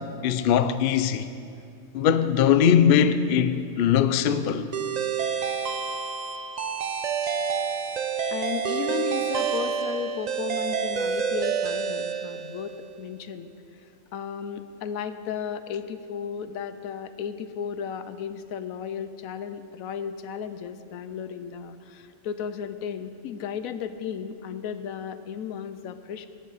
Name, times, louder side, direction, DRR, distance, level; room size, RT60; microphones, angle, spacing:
voice 1, 0.2-1.3 1.9-4.7, left 8 dB, 60° left, 0.6 m, -21 dB
sound 1, 4.7-12.9, right 7 dB, 60° right, 0.4 m, -28 dB
voice 2, 8.3-13.5 14.1-26.3, left 7 dB, 85° left, 1.1 m, -34 dB
17.5 x 10.0 x 4.1 m
omnidirectional pair, 1.4 m